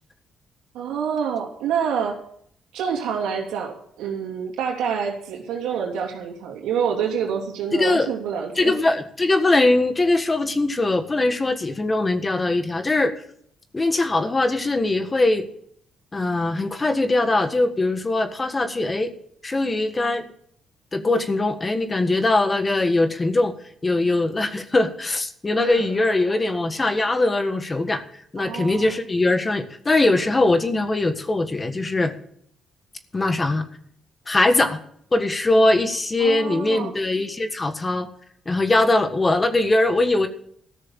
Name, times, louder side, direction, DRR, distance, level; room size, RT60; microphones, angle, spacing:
voice 1, 0.7-2.2 2.7-8.8 25.6-25.9 28.4-28.9 36.2-36.9, right 7 dB, 90° right, 0 dB, 3.0 m, -27 dB
voice 2, 7.7-8.1 8.6-13.1 13.7-15.5 16.1-19.1 19.4-20.2 20.9-23.5 23.8-28.0 28.3-32.1 33.1-33.6 34.3-34.8 35.1-38.1 38.4-40.3, left 2 dB, 25° left, 8 dB, 1.5 m, -21 dB
14.0 x 6.6 x 8.8 m, 0.66 s
cardioid pair, 90°, 0 cm